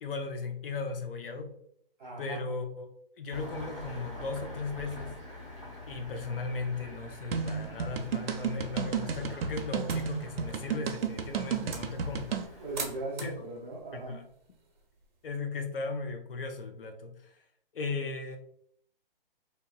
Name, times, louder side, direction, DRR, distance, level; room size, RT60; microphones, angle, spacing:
voice 1, 0.0-1.5 2.2-2.9 3.2-5.2 5.9-12.3 13.2-13.4 13.9-14.2 15.2-17.4 17.7-18.4, left 4 dB, 70° left, 5 dB, 0.6 m, -37 dB
voice 2, 2.0-2.4 10.8-10.9 12.6-14.2, right 2 dB, 10° right, -9 dB, 0.5 m, -39 dB
Engine starting, 3.3-13.0, left 1 dB, 15° left, 1.0 m, -46 dB
sound 1, 7.3-12.5, right 7 dB, 90° right, 0.5 m, -32 dB
sound 2, 9.9-15.3, right 4 dB, 55° right, 0.7 m, -46 dB
2.9 x 2.1 x 2.2 m, 0.66 s
hypercardioid pair, 160°, 29 cm